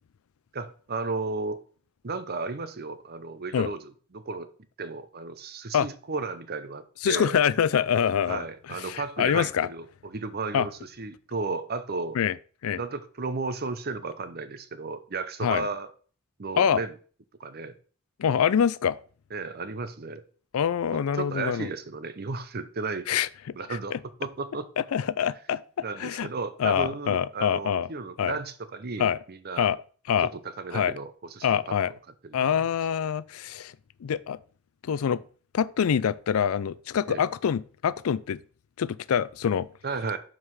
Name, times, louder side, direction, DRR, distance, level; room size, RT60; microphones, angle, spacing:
voice 1, 0.5-1.6 2.0-4.5 4.8-7.4 8.3-12.2 12.8-15.9 16.4-16.9 17.4-17.7 19.3-20.2 21.1-23.1 23.5-24.7 25.8-29.7 30.2-30.3 30.6-31.7 32.2-32.7 37.1-37.3 39.8-40.2, right 3 dB, 45° right, 0.7 m, -34 dB
voice 2, 7.0-9.7 10.5-10.7 12.1-12.3 12.6-12.8 15.4-15.7 16.6-16.8 18.2-19.0 20.5-21.7 23.1-23.6 23.9-24.0 24.9-25.6 26.0-26.3 26.6-27.9 28.2-28.4 29.0-29.2 29.6-29.8 30.1-30.3 30.7-30.9 31.4-31.9 32.3-33.7 34.0-34.4 34.8-35.2 35.5-38.4 38.8-39.7, left 8 dB, 85° left, 0.4 m, -25 dB
5.6 x 4.9 x 6.1 m
head